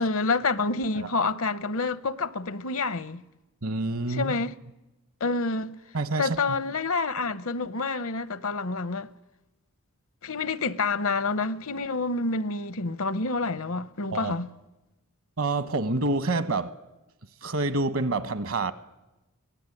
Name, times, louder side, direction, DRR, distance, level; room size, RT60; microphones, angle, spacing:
voice 1, 0.0-3.2 4.1-4.5 5.2-5.8 6.2-9.1 10.2-14.5, left 3 dB, 65° left, 0.8 m, -28 dB
voice 2, 3.6-4.3 5.9-6.6 14.1-14.3 15.4-16.7 17.4-18.7, right 2 dB, 65° right, 1.2 m, -27 dB
24.0 x 18.5 x 9.8 m
head